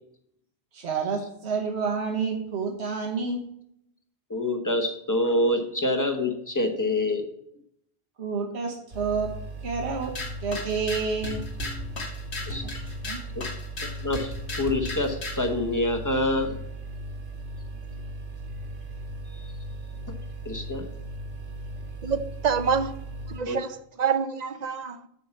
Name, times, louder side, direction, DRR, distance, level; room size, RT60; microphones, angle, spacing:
voice 1, 0.7-3.4 8.2-9.3 9.6-10.1 10.4-11.4 12.6-13.2, right 5 dB, 90° right, 2 dB, 1.4 m, -29 dB
voice 2, 4.3-7.2 12.5-12.6 13.8-16.6 19.3-19.4 20.4-20.8 23.5-23.6, left 1 dB, 20° left, 5 dB, 1.0 m, -26 dB
sound 1, 8.9-23.4, right 1 dB, 70° right, 1.8 m, -38 dB
sound 2, 10.0-15.5, left 1 dB, 75° left, 2.0 m, -36 dB
voice 3, 22.0-23.0 23.2-25.1, right 6 dB, 50° right, 12 dB, 0.6 m, -27 dB
8.2 x 4.7 x 7.0 m, 0.72 s
omnidirectional pair, 1.1 m